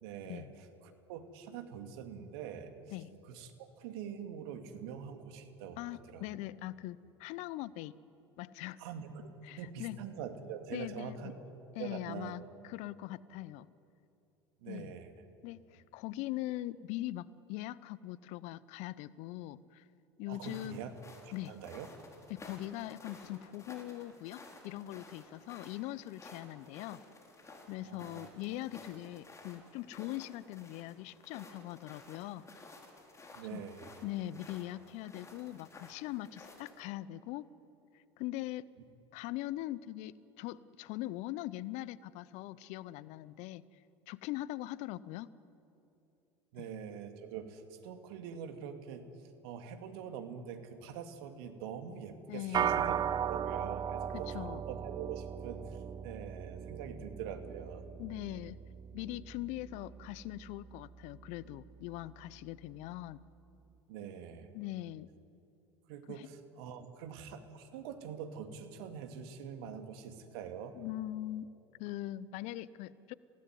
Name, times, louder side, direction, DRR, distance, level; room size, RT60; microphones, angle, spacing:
voice 1, 0.0-3.0 3.3-5.8 6.1-6.3 8.8-11.3 11.8-12.4 14.6-15.1 20.3-20.9 21.2-21.9 27.8-28.3 33.3-33.9 46.5-53.0 53.3-57.9 63.9-64.5 65.9-70.8, right 7 dB, 65° right, 7 dB, 2.4 m, -44 dB
voice 2, 5.8-7.9 8.4-8.8 9.4-10.0 10.7-11.3 11.8-13.7 14.7-15.0 15.4-19.8 20.2-20.8 21.3-21.6 22.3-27.0 27.7-32.5 33.5-33.6 34.0-37.5 37.9-38.7 39.1-43.6 44.1-45.3 46.6-46.7 52.3-52.9 54.3-54.6 58.0-58.6 58.9-63.2 64.5-65.1 66.1-66.3 70.7-71.5 71.8-73.1, left 15 dB, 55° left, 19 dB, 0.7 m, -41 dB
sound 1, 20.3-36.8, left 2 dB, 20° left, 4.8 m, -54 dB
sound 2, 52.5-62.1, right 8 dB, 30° right, 0.7 m, -38 dB
27.5 x 17.5 x 9.6 m, 2.8 s
hypercardioid pair, 80°, 14 cm